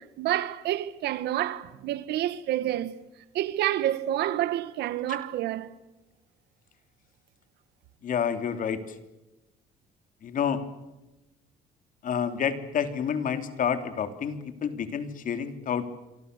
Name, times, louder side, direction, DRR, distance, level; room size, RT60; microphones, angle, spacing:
voice 1, 0.0-3.0 3.3-5.7, right 13 dB, 80° right, 1.8 m, -28 dB
voice 2, 8.0-8.8 10.2-10.6 12.0-15.9, left 7 dB, 50° left, 3.2 m, -29 dB
27.0 x 25.0 x 6.8 m
cardioid pair, 110°, 17 cm